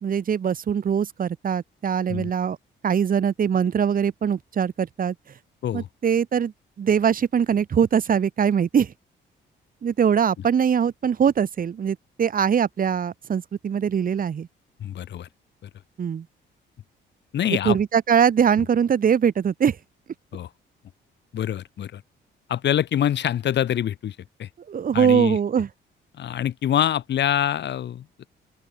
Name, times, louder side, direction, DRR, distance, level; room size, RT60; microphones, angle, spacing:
voice 1, 0.0-2.6 2.8-5.1 5.7-6.5 6.8-8.9 9.8-14.5 16.0-16.2 17.5-19.8 24.7-25.7, right 7 dB, 45° right, 1.4 m, -22 dB
voice 2, 14.8-15.3 15.6-15.7 17.3-17.8 20.3-20.5 21.3-22.0 22.5-24.5 24.9-25.4 26.1-28.3, left 10 dB, 60° left, 1.5 m, -25 dB
open air
cardioid pair, 90°, 20 cm